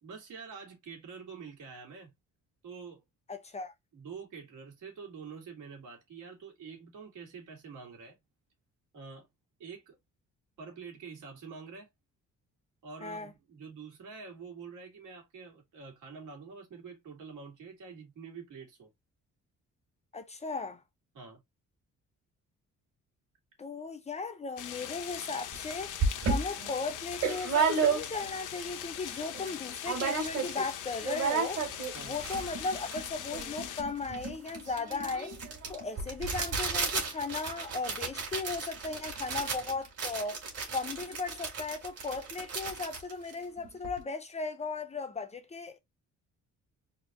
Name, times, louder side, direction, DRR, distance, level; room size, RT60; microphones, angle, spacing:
voice 1, 0.0-2.1 2.6-3.0 3.9-8.2 8.9-9.3 9.6-10.0 10.6-11.9 12.8-18.9 21.1-21.4 31.9-32.2, right 5 dB, 85° right, 2.5 m, -46 dB
voice 2, 3.3-3.7 13.0-13.3 20.1-20.8 23.6-25.9 26.3-31.6 32.0-35.3 35.7-40.4 40.7-45.8, left 4 dB, 20° left, 0.5 m, -36 dB
sound 1, 24.6-33.8, left 10 dB, 85° left, 0.8 m, -41 dB
sound 2, 25.5-25.6 26.0-28.4 28.8-28.9 29.1-29.5 29.8-30.7 30.9-44.0, right 5 dB, 55° right, 2.2 m, -33 dB
4.4 x 2.6 x 3.6 m
cardioid pair, 180°, 30 cm